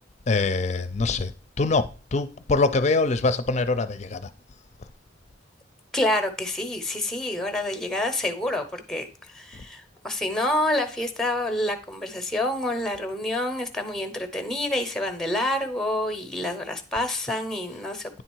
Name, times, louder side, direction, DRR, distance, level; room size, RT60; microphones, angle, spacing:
voice 1, 0.3-1.3 1.6-4.3, left 3 dB, 35° left, 0.5 m, -24 dB
voice 2, 5.9-18.1, left 1 dB, ahead, 0.7 m, -28 dB
9.3 x 3.8 x 4.6 m
head